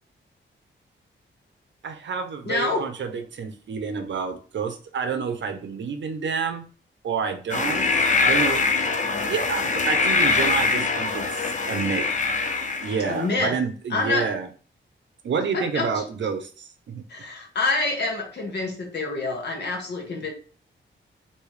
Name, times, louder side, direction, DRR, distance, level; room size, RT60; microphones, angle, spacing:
voice 1, 1.8-6.6 7.0-8.6 9.3-12.1 12.8-14.5 15.2-17.0, right 6 dB, 65° right, 8 dB, 0.7 m, -29 dB
voice 2, 2.4-2.8 13.1-13.6 13.9-14.3 15.5-15.9 17.1-20.3, left 3 dB, 55° left, 2 dB, 1.2 m, -26 dB
sound 1, 7.5-13.3, left 4 dB, 40° left, 0.5 m, -23 dB
3.2 x 3.0 x 4.7 m, 0.40 s
wide cardioid pair, 165°, 20 cm